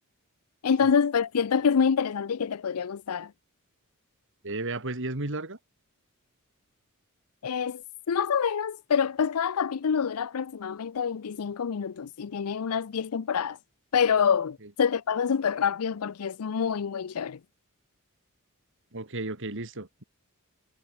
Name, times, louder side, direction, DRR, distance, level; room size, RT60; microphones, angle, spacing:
voice 1, 0.6-3.3 7.4-13.6 13.9-17.4, left 6 dB, 75° left, 0.5 m, -26 dB
voice 2, 4.4-5.6 18.9-20.0, right 2 dB, 60° right, 2.8 m, -33 dB
head